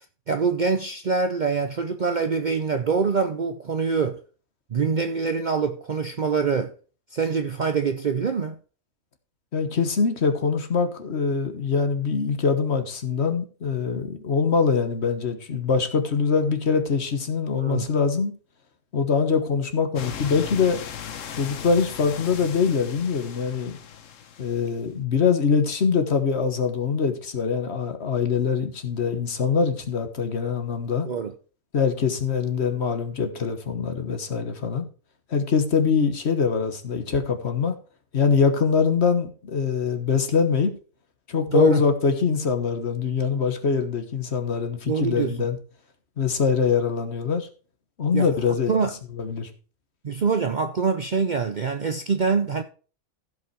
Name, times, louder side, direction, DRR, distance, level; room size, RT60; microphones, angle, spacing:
voice 1, 0.3-4.2 4.7-6.7 7.1-8.6 17.6-17.9 31.0-31.3 41.5-41.8 44.8-45.4 48.1-48.9 50.0-52.6, right 5 dB, 45° right, 0.7 m, -24 dB
voice 2, 9.5-18.3 18.9-20.8 21.4-23.8 24.4-31.1 31.7-34.9 35.3-37.7 38.1-40.7 41.3-45.6 46.2-47.5 48.0-48.7 49.2-49.5, left 5 dB, 60° left, 1.5 m, -23 dB
sound 1, 20.0-24.8, left 8 dB, 85° left, 1.3 m, -37 dB
15.0 x 5.3 x 4.6 m
omnidirectional pair, 1.3 m